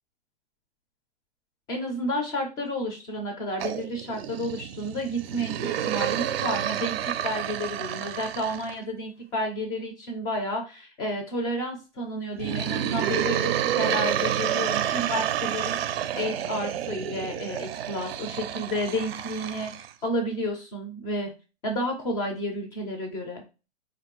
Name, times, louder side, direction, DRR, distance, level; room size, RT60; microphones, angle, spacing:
voice 1, 1.7-7.0 7.2-19.7 20.0-21.3 21.6-23.4, equal, 10° left, 3 dB, 0.3 m, -31 dB
sound 1, 3.6-8.8 12.4-19.9, right 10 dB, 60° right, 0.5 m, -29 dB
3.5 x 2.5 x 3.0 m, 0.32 s
hypercardioid pair, 140°, 33 cm